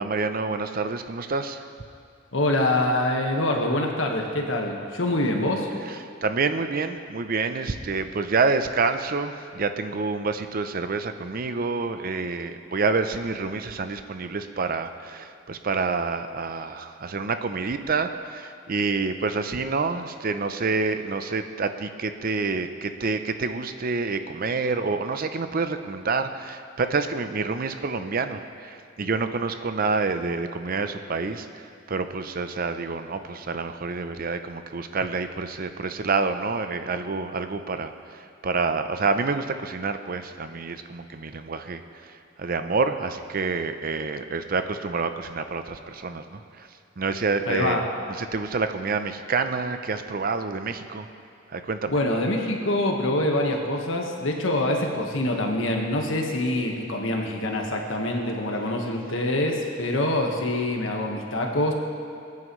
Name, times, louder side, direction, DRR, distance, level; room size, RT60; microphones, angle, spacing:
voice 1, 0.0-1.6 6.2-46.7 47.0-47.8 48.2-51.1 51.5-51.9, right 4 dB, 45° right, 9 dB, 0.6 m, -28 dB
voice 2, 2.3-5.7 47.5-47.8 51.9-61.7, left 1 dB, 70° left, 1 dB, 1.5 m, -25 dB
21.0 x 9.5 x 3.2 m, 2.5 s
head